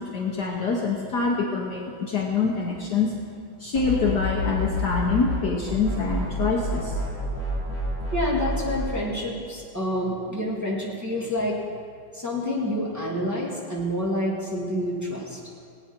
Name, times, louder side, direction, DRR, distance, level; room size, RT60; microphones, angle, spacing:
voice 1, 0.0-3.1 3.6-7.0, left 4 dB, 55° left, -1 dB, 1.4 m, -25 dB
sound 1, 3.7-5.4 5.7-8.8, left 1 dB, 55° right, 3.8 m, -29 dB
voice 2, 8.1-11.6 12.1-15.4, left 1 dB, 10° right, -5 dB, 2.1 m, -28 dB
19.5 x 9.0 x 4.5 m, 2.2 s
omnidirectional pair, 2.4 m